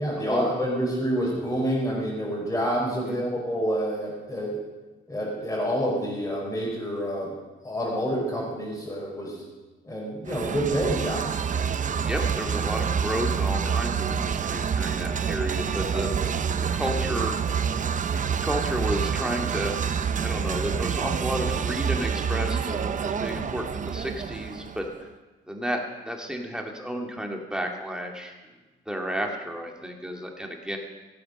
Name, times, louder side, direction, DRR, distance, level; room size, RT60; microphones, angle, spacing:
voice 1, 0.0-4.6 5.1-7.3 7.6-9.4 9.8-11.4, equal, 15° left, -6 dB, 4.5 m, -28 dB
sound 1, 10.3-25.0, right 7 dB, 40° right, 0.7 m, -27 dB
voice 2, 12.0-16.3 16.7-17.4 18.3-19.9 20.1-25.1 25.5-28.3 28.9-30.8, equal, 5° right, 1 dB, 2.4 m, -32 dB
17.0 x 7.8 x 6.5 m, 1.2 s
cardioid pair, 90°, 20 cm